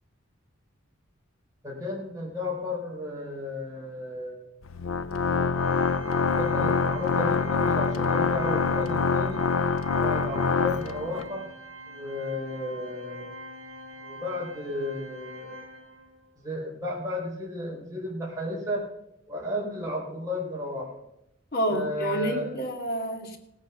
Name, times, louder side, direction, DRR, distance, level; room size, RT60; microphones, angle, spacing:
voice 1, 1.6-4.6 6.4-9.4 10.0-11.5 11.9-13.3 14.0-15.6 16.4-18.8 19.3-20.9 21.7-22.5, left 1 dB, 15° right, -4 dB, 4.5 m, -33 dB
Organ, 4.6-11.3, left 5 dB, 90° left, 0.6 m, -25 dB
Organ 2, 5.5-16.3, equal, 70° right, 2.1 m, -44 dB
voice 2, 21.5-23.4, right 1 dB, 50° left, 3 dB, 2.4 m, -29 dB
17.5 x 8.7 x 5.9 m, 0.80 s
head